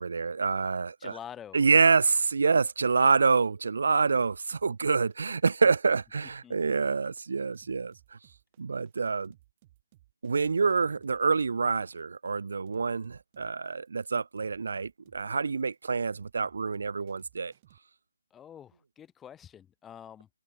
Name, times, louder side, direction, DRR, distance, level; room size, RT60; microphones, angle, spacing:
voice 1, 0.0-1.2 1.5-7.9 8.6-9.3 10.2-17.5, right 4 dB, 55° right, 0.5 m, -26 dB
voice 2, 1.0-1.7 6.4-6.6 18.3-20.3, left 9 dB, 10° left, 1.9 m, -46 dB
sound 1, 4.1-17.8, right 16 dB, 25° right, 7.2 m, -62 dB
figure-of-eight pair, 150°, 0 cm